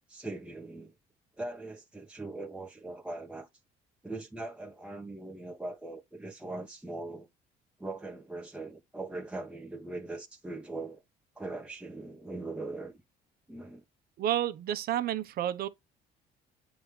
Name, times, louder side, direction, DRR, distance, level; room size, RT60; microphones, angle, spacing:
voice 1, 0.1-0.9 1.4-3.5 4.0-7.3 7.8-11.0 11.4-13.0 13.5-13.8, right 2 dB, 5° right, 1.3 m, -40 dB
voice 2, 14.2-15.7, right 11 dB, 65° right, 1.1 m, -30 dB
8.5 x 3.7 x 3.3 m
cardioid pair, 110°, 17 cm